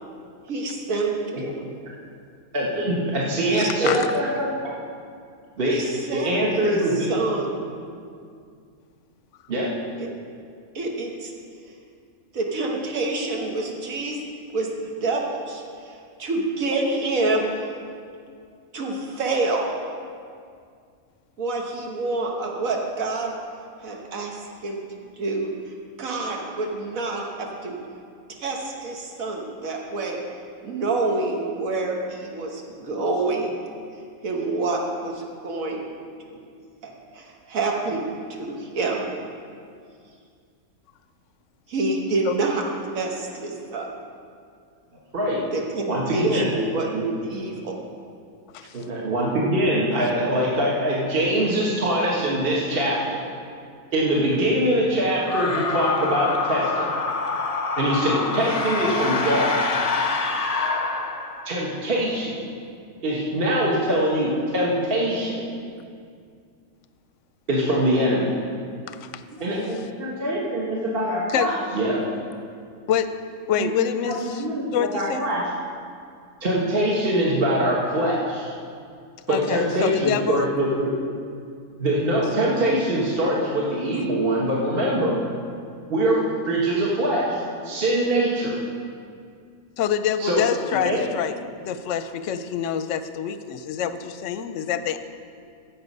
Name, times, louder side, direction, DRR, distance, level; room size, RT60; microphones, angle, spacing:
voice 1, 0.5-1.1 1.4-1.7 3.5-4.1 5.6-6.3 6.6-7.6 10.0-10.1 10.8-11.3 12.3-14.2 14.5-15.9 16.2-17.7 18.7-19.7 21.4-23.3 23.8-24.8 25.2-25.5 26.0-27.8 28.4-30.2 30.6-33.5 34.2-35.8 37.1-38.0 38.4-39.0 41.7-42.6 42.9-43.9 45.5-45.8 46.1-46.9 47.2-47.8, right 2 dB, 70° right, 0 dB, 1.7 m, -27 dB
voice 2, 2.5-4.7 5.6-5.8 6.1-7.1 9.5-9.7 45.1-45.4 45.9-46.5 46.9-47.0 48.7-53.2 53.9-56.9 57.8-59.6 61.4-62.3 63.0-65.4 67.5-68.3 69.4-72.0 73.6-73.7 74.0-75.5 76.4-78.5 79.3-80.9 81.8-85.2 85.9-88.5 90.2-90.5 90.8-91.0, right 1 dB, 40° right, -4 dB, 1.5 m, -23 dB
sound 1, 55.2-61.7, left 4 dB, 40° left, 0.5 m, -26 dB
voice 3, 73.5-74.4 74.7-75.2 79.3-80.5 89.8-91.3 91.6-95.0, left 9 dB, 65° left, 11 dB, 0.8 m, -26 dB
15.0 x 6.0 x 5.4 m, 2.2 s
omnidirectional pair, 1.5 m